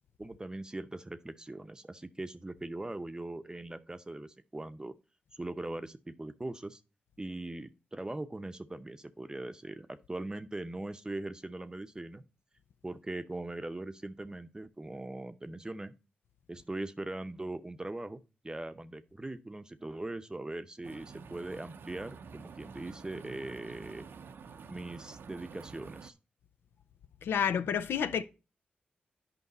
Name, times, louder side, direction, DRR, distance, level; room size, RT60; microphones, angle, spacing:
voice 1, 0.2-4.9 5.3-6.8 7.2-12.2 12.8-15.9 16.5-24.1 24.7-26.1, right 2 dB, 20° right, 0.7 m, -40 dB
sound 1, 20.8-26.1, right 5 dB, 75° right, 0.6 m, -49 dB
voice 2, 27.2-28.2, left 8 dB, 85° left, 0.5 m, -29 dB
9.6 x 5.3 x 4.0 m
cardioid pair, 55°, 4 cm